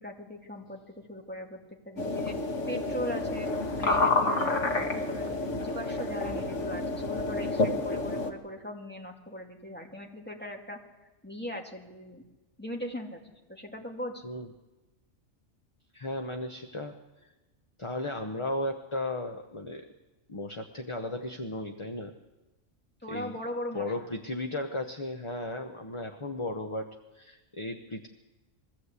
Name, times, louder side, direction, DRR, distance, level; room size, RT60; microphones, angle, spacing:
voice 1, 0.0-2.4 2.7-3.5 3.8-10.8 11.2-12.2 12.6-14.2 23.0-24.1, left 1 dB, 10° left, 1 dB, 2.3 m, -39 dB
sound 1, 2.0-8.3, left 2 dB, 70° left, 2.0 m, -29 dB
voice 2, 15.9-17.0 17.8-19.9 20.3-22.1 23.1-23.3 23.7-28.1, left 2 dB, 25° left, 5 dB, 0.9 m, -35 dB
22.5 x 15.5 x 8.3 m, 1.1 s
omnidirectional pair, 1.3 m